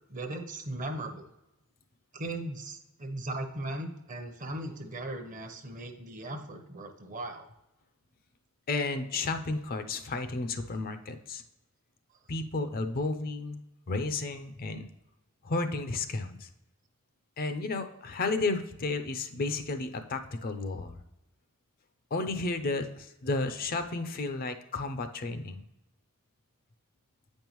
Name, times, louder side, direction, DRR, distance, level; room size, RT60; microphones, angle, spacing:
voice 1, 0.1-1.2 2.1-7.5, right 1 dB, 40° right, 6 dB, 0.8 m, -38 dB
voice 2, 8.7-11.4 12.3-13.6 13.9-14.9 15.4-16.5 17.4-21.0 22.1-25.6, left 3 dB, 45° left, 8 dB, 0.5 m, -32 dB
8.6 x 5.3 x 3.0 m, 0.91 s
head